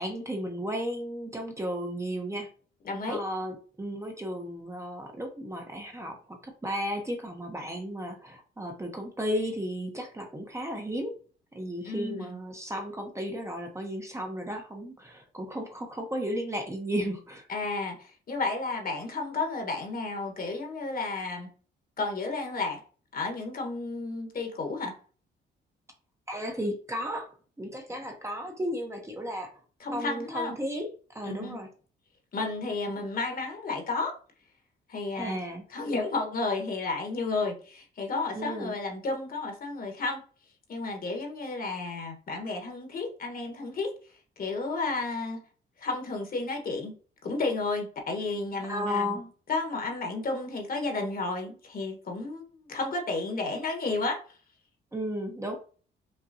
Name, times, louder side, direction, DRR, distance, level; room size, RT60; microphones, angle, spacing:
voice 1, 0.0-2.5 3.1-11.1 11.5-17.5 26.3-27.3 27.6-29.5 29.9-30.9 31.1-31.7 35.1-35.6 38.3-38.8 48.7-49.3 54.9-55.6, equal, 15° right, 0.8 m, -34 dB
voice 2, 2.8-3.2 11.8-12.4 17.5-21.5 22.0-22.8 23.1-25.0 29.8-30.5 31.2-31.6 32.3-34.2 34.9-35.4 35.7-40.2 40.7-43.9 44.4-45.4 45.8-47.0 47.2-49.2 49.5-54.4, left 3 dB, 45° left, 1.2 m, -32 dB
5.5 x 2.2 x 2.7 m
cardioid pair, 90°, 20 cm